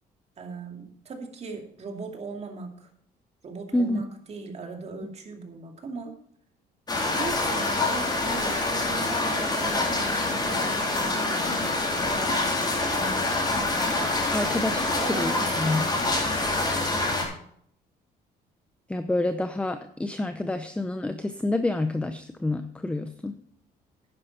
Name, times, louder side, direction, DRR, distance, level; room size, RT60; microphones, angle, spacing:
voice 1, 0.4-2.9 3.4-6.2 7.1-14.0 14.9-15.8, right 3 dB, 40° right, 3 dB, 2.5 m, -39 dB
voice 2, 3.7-4.0 14.3-15.9 18.9-23.3, left 2 dB, 5° left, 9 dB, 0.6 m, -28 dB
sound 1, 6.9-17.2, left 2 dB, 25° left, 3.7 m, -26 dB
11.0 x 9.7 x 4.3 m, 0.65 s
cardioid pair, 110°, 17 cm